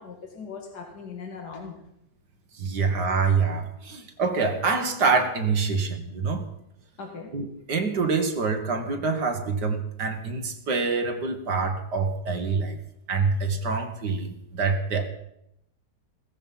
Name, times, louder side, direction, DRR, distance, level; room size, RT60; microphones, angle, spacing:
voice 1, 0.0-1.8 7.0-7.3, left 5 dB, 75° left, 2 dB, 2.7 m, -39 dB
voice 2, 2.6-6.4 7.3-12.8 13.1-15.1, right 4 dB, 85° right, 5 dB, 2.2 m, -26 dB
16.0 x 14.5 x 5.6 m, 0.78 s
omnidirectional pair, 1.7 m